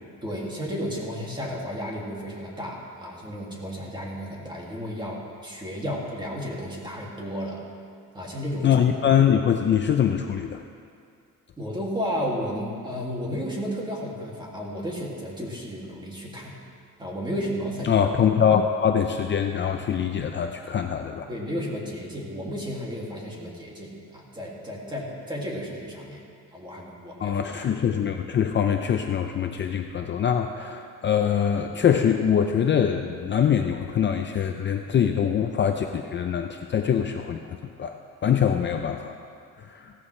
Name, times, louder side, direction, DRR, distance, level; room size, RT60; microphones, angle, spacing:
voice 1, 0.2-7.6 8.1-8.8 11.6-16.6 17.0-17.9 21.3-26.2 26.5-27.4, equal, 15° right, -3 dB, 2.3 m, -33 dB
voice 2, 8.6-10.6 17.8-21.3 27.2-39.1 39.6-39.9, left 8 dB, 35° left, 5 dB, 0.5 m, -23 dB
16.5 x 14.0 x 3.2 m, 2.3 s
cardioid pair, 145°, 32 cm